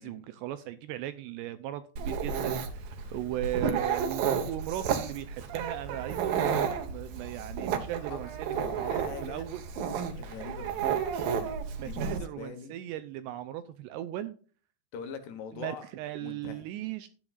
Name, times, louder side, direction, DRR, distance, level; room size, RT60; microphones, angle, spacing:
voice 1, 0.0-9.6 11.8-14.3 15.5-17.1, right 13 dB, 85° right, 11 dB, 2.5 m, -38 dB
Dog, 2.0-12.2, right 7 dB, 65° right, 2.4 m, -32 dB
voice 2, 8.5-9.5 10.2-11.0 11.8-12.8 14.9-15.9 16.2-16.7, left 6 dB, 70° left, 6 dB, 3.0 m, -43 dB
13.5 x 9.5 x 2.4 m, 0.40 s
omnidirectional pair, 5.4 m